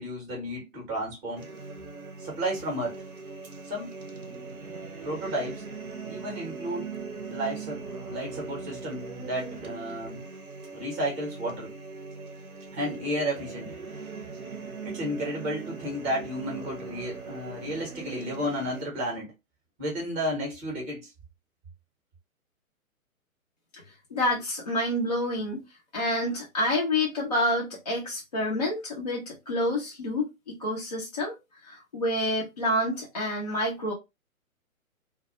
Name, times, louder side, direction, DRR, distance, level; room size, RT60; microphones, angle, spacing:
voice 1, 0.0-1.4 2.2-3.0 3.7-3.9 5.0-5.6 6.0-6.9 7.3-7.8 8.1-10.2 10.7-11.7 12.7-13.7 14.8-19.3 19.8-21.1, equal, 10° right, 0.6 m, -32 dB
sound 1, 1.4-18.8, right 4 dB, 90° right, 0.6 m, -40 dB
voice 2, 24.1-25.6 25.9-31.4 31.6-33.9, left 1 dB, 30° left, 0.4 m, -28 dB
2.2 x 2.1 x 2.7 m
figure-of-eight pair, 130°, 42 cm